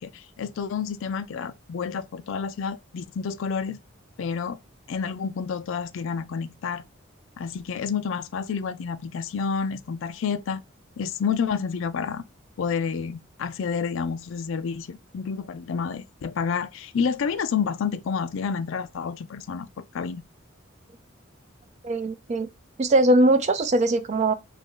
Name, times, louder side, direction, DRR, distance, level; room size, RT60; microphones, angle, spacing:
voice 1, 0.0-3.8 4.2-4.6 4.9-6.8 7.4-10.6 11.0-12.2 12.6-19.7 19.9-20.2, left 6 dB, 65° left, 0.3 m, -29 dB
voice 2, 21.8-22.5 22.8-24.3, right 1 dB, 30° right, 0.3 m, -21 dB
2.9 x 2.5 x 3.7 m
head